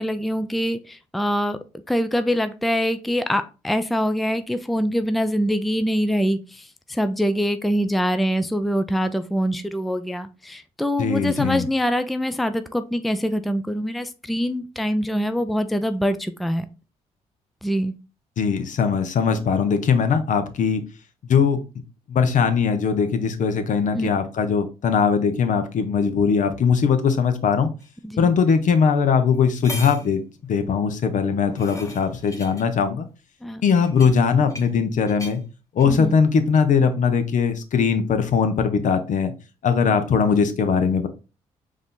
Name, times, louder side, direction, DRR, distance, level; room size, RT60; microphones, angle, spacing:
voice 1, 0.0-1.6 1.9-16.6 17.6-17.9 23.9-24.1 28.0-28.3 33.4-33.7 35.8-36.2 40.3-40.4, equal, ahead, 10 dB, 0.4 m, -24 dB
voice 2, 11.0-11.6 18.4-20.8 21.3-21.6 22.1-27.7 28.2-30.2 30.5-33.1 33.6-35.4 35.7-39.3 39.6-41.1, left 6 dB, 60° left, 9 dB, 0.8 m, -20 dB
sound 1, 27.8-27.9 28.8-28.9 29.3-30.1 31.1-32.6 33.6-34.8 35.1-35.4 35.8-36.1, left 1 dB, 20° left, 1.3 m, -39 dB
4.8 x 2.8 x 3.7 m, 0.31 s
supercardioid pair, 60°, 15 cm